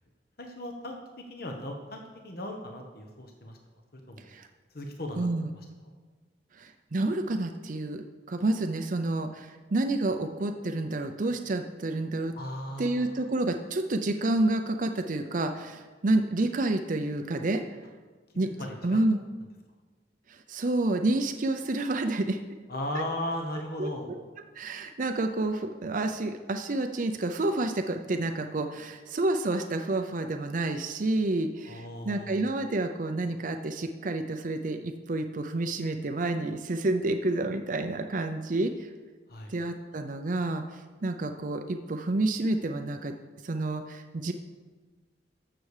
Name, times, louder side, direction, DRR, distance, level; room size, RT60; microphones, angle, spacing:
voice 1, 0.4-3.6 4.1-4.3 4.7-5.3 12.3-13.0 18.6-19.0 22.7-24.1 31.6-32.5 39.3-39.5, left 1 dB, 55° left, 3 dB, 1.2 m, -37 dB
voice 2, 5.2-5.5 6.6-12.3 12.8-17.6 18.4-18.5 18.8-19.2 20.3-22.4 23.8-23.9 24.6-38.9 39.5-43.1 43.4-44.3, right 2 dB, 45° right, 6 dB, 0.6 m, -29 dB
13.5 x 6.9 x 4.9 m, 1.4 s
head